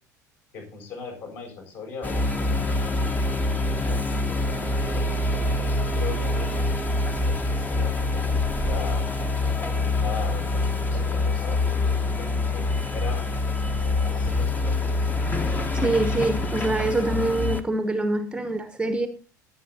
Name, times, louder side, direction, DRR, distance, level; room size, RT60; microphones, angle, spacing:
voice 1, 0.5-5.3 5.9-9.1 9.7-13.3 14.2-15.1, left 4 dB, 55° left, 7.2 m, -39 dB
sound 1, 2.0-17.6, left 2 dB, 20° left, 1.3 m, -25 dB
voice 2, 15.8-19.1, right 2 dB, 10° right, 1.1 m, -25 dB
20.0 x 8.6 x 2.8 m
figure-of-eight pair, 65°, 10 cm